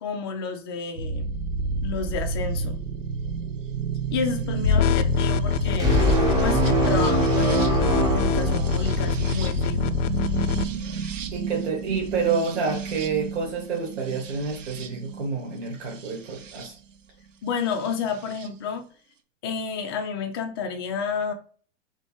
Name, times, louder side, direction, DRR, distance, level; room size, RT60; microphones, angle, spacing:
voice 1, 0.0-1.3 1.8-2.8 4.1-5.9 6.4-10.0 17.4-18.8 19.4-21.3, left 5 dB, 20° left, 4 dB, 0.3 m, -30 dB
sound 1, 1.0-16.7 17.9-18.5, right 6 dB, 85° right, 0.8 m, -31 dB
sound 2, 4.6-10.6, left 8 dB, 75° left, 0.5 m, -25 dB
sound 3, 5.8-9.3, right 1 dB, 10° right, 0.7 m, -23 dB
voice 2, 11.3-16.7, right 5 dB, 65° right, 0 dB, 1.4 m, -28 dB
3.2 x 3.1 x 4.3 m, 0.42 s
hypercardioid pair, 155°, 37 cm